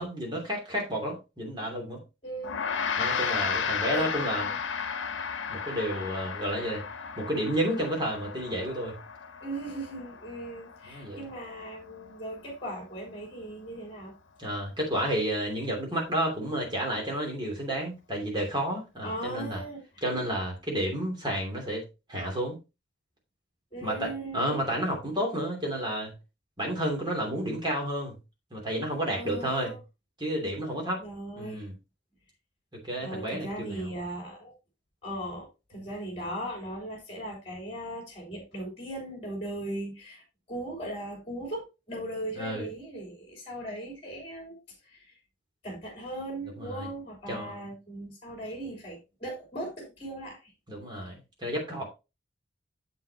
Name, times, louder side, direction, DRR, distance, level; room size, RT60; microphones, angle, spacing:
voice 1, 0.0-2.0 3.0-4.5 5.5-6.8 7.2-9.0 10.8-11.2 14.4-19.6 20.0-21.8 22.1-22.6 23.8-26.1 26.6-28.1 28.5-29.7 30.2-31.0 31.4-31.7 32.8-33.9 42.4-42.7 46.6-46.9 47.3-47.6 50.7-51.8, right 1 dB, 25° right, 0 dB, 2.9 m, -31 dB
voice 2, 2.2-2.6 3.0-3.5 3.9-4.8 9.4-14.1 19.0-20.0 23.7-24.6 29.1-29.8 31.0-31.6 33.0-34.5 35.0-40.2 40.5-44.6 44.8-45.2 45.6-50.5, right 1 dB, 30° left, 0 dB, 3.6 m, -38 dB
Gong, 2.4-12.0, left 6 dB, 85° left, 0.9 m, -34 dB
7.7 x 7.5 x 2.9 m, 0.27 s
head